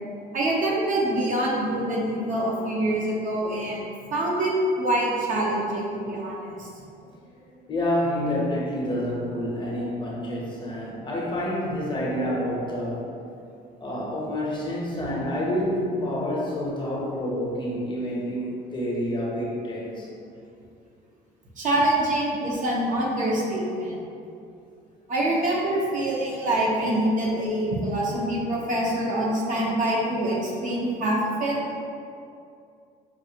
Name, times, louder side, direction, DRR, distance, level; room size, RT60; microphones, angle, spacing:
voice 1, 0.3-3.8 4.1-4.5 4.8-6.7 21.6-24.0 25.1-31.6, right 1 dB, 50° right, -4 dB, 0.8 m, -25 dB
voice 2, 7.7-13.1 13.8-20.1, equal, 30° left, -4 dB, 0.8 m, -28 dB
4.7 x 2.4 x 2.8 m, 2.5 s
cardioid pair, 110°, 17 cm